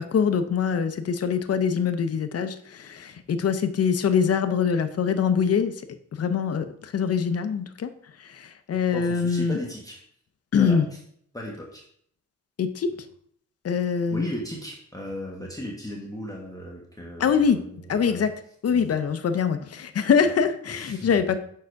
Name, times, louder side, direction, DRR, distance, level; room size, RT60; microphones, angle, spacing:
voice 1, 0.0-5.7 6.1-7.9 8.2-9.6 10.5-10.8 12.6-12.9 13.6-14.3 17.2-17.6 17.9-18.3 18.6-21.4, left 6 dB, 50° left, 9 dB, 0.6 m, -24 dB
voice 2, 8.9-10.0 10.5-11.0 11.3-11.8 12.9-13.0 14.1-18.3 18.7-18.9 20.2-20.3 20.7-21.1, equal, 10° left, -2 dB, 1.2 m, -37 dB
6.3 x 4.7 x 4.7 m, 0.66 s
wide cardioid pair, 95°, 31 cm